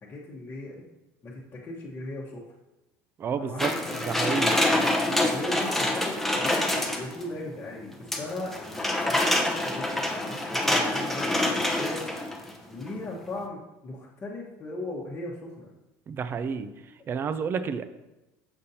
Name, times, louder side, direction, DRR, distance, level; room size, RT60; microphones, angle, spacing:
voice 1, 0.0-0.8 1.2-2.4 3.3-4.1 5.3-12.1 12.7-15.7, left 2 dB, 30° left, -6 dB, 1.1 m, -38 dB
voice 2, 3.2-3.7 4.0-4.6 16.1-16.7 17.1-17.8, right 6 dB, 35° right, 11 dB, 0.5 m, -30 dB
sound 1, 3.6-7.3 8.1-12.5 12.9-13.0, left 1 dB, 5° left, 0.8 m, -26 dB
7.1 x 5.2 x 2.8 m, 1.0 s
supercardioid pair, 105°, 7 cm